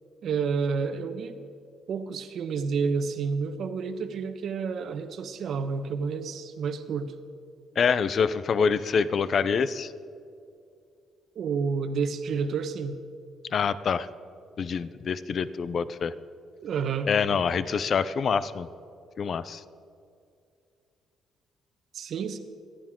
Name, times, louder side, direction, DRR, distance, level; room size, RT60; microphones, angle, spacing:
voice 1, 0.2-1.4 1.9-7.1 11.3-13.0 16.6-17.1 21.9-22.4, right 5 dB, 65° right, 8 dB, 1.1 m, -30 dB
voice 2, 7.8-9.9 13.5-14.1 14.6-16.1 17.1-18.7 19.2-19.6, left 6 dB, 55° left, 15 dB, 0.5 m, -26 dB
26.5 x 10.5 x 3.7 m, 2.4 s
cardioid pair, 90°, 0 cm